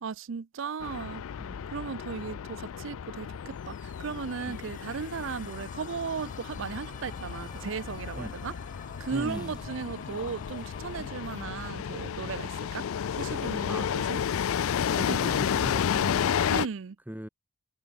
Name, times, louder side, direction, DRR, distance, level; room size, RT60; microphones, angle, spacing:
voice 1, 0.0-1.2 1.7-8.5 9.0-12.8 13.2-14.2 15.1-15.2 16.5-17.0, right 5 dB, 60° right, 0.5 m, -36 dB
sound 1, 0.8-16.7, left 8 dB, 80° left, 0.4 m, -32 dB
sound 2, 3.4-13.2, left 6 dB, 35° left, 1.2 m, -51 dB
sound 3, 6.1-11.8, left 1 dB, 20° left, 4.5 m, -50 dB
voice 2, 9.1-9.6 11.0-11.1 13.7-13.9 14.9-16.4 17.1-17.3, equal, 10° right, 0.9 m, -38 dB
head